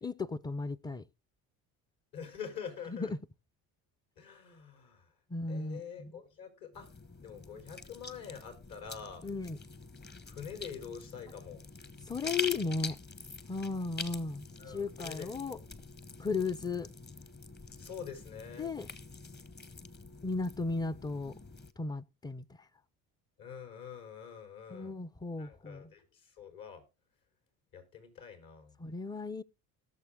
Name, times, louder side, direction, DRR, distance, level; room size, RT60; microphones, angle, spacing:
voice 1, 0.0-1.0 2.9-3.2 5.3-6.1 9.2-9.6 12.1-13.0 13.5-14.5 14.7-15.6 16.2-16.9 18.6-18.9 20.2-21.3 21.8-22.4 24.7-25.8 28.8-29.4, left 4 dB, 10° left, 0.5 m, -35 dB
voice 2, 2.1-3.1 4.2-5.1 5.5-6.9 7.2-9.3 10.3-11.6 14.6-15.6 17.8-18.7 23.4-25.0 25.4-26.8 27.7-28.8, left 7 dB, 60° left, 4.1 m, -46 dB
sound 1, 6.7-21.7, left 5 dB, 25° left, 1.2 m, -45 dB
17.5 x 6.8 x 3.6 m
supercardioid pair, 85°, 39 cm